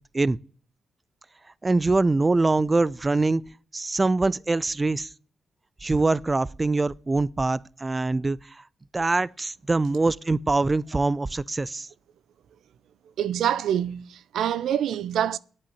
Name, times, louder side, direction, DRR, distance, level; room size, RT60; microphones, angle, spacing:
voice 1, 1.6-3.4 3.7-5.1 5.8-8.6 8.9-11.9, right 3 dB, 30° right, 0.5 m, -24 dB
voice 2, 13.2-15.4, right 10 dB, 80° right, 0.5 m, -26 dB
8.8 x 8.6 x 9.1 m
supercardioid pair, 55°, 0 cm